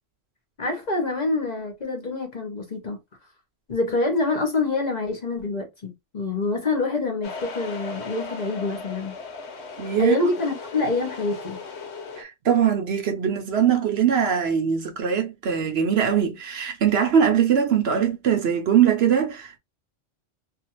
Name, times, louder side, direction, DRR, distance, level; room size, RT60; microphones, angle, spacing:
voice 1, 0.6-3.0 3.7-9.2 10.0-11.6, left 3 dB, 40° left, 0.8 m, -26 dB
sound 1, 7.2-12.2, left 4 dB, 65° left, 0.9 m, -37 dB
voice 2, 9.8-10.2 12.2-19.6, right 8 dB, 60° right, 0.8 m, -21 dB
2.6 x 2.3 x 2.9 m
omnidirectional pair, 1.3 m